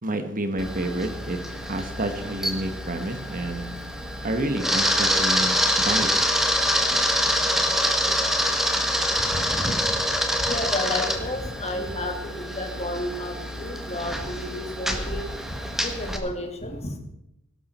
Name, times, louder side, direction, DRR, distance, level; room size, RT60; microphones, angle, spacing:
voice 1, 0.0-1.4 1.7-3.8 4.2-6.1 6.9-7.0, right 1 dB, 40° right, 7 dB, 1.5 m, -29 dB
Camera, 0.6-16.2, equal, ahead, 1.9 m, -26 dB
voice 2, 9.3-9.8 10.5-15.2 15.8-17.0, left 1 dB, 30° left, 4 dB, 2.4 m, -31 dB
19.0 x 12.5 x 4.4 m, 0.80 s
head